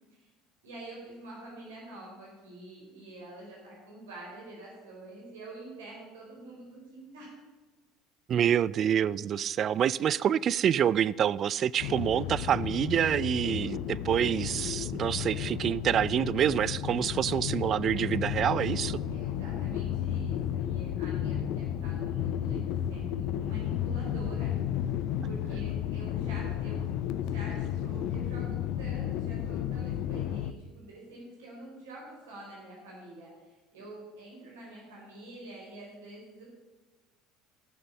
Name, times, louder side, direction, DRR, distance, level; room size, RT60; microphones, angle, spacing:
voice 1, 0.6-7.3 9.9-10.0 19.1-24.9 25.2-26.8 27.2-36.5, right 2 dB, 80° right, 4.4 m, -47 dB
voice 2, 8.3-19.0, right 9 dB, 45° right, 0.4 m, -27 dB
sound 1, 11.8-30.5, left 10 dB, 60° left, 0.7 m, -33 dB
14.5 x 6.8 x 7.1 m
hypercardioid pair, 70°, 0 cm